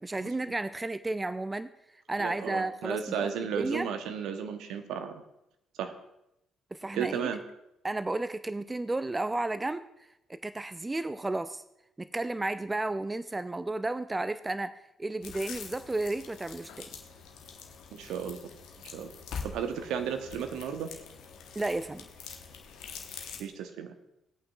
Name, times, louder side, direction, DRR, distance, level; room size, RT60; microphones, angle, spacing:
voice 1, 0.0-1.7 2.1-3.3 3.6-3.9 6.7-7.3 7.8-9.9 10.3-11.6 12.0-16.9 21.5-22.1, right 2 dB, 20° right, 13 dB, 0.4 m, -33 dB
voice 2, 2.2-5.2 5.8-5.9 6.9-7.4 17.9-18.4 18.9-19.1 19.4-20.9 23.4-23.9, right 7 dB, 65° right, 7 dB, 0.9 m, -34 dB
sound 1, 15.2-23.4, left 6 dB, 65° left, 1.0 m, -45 dB
18.5 x 8.6 x 2.3 m, 0.85 s
figure-of-eight pair, 45°, 0 cm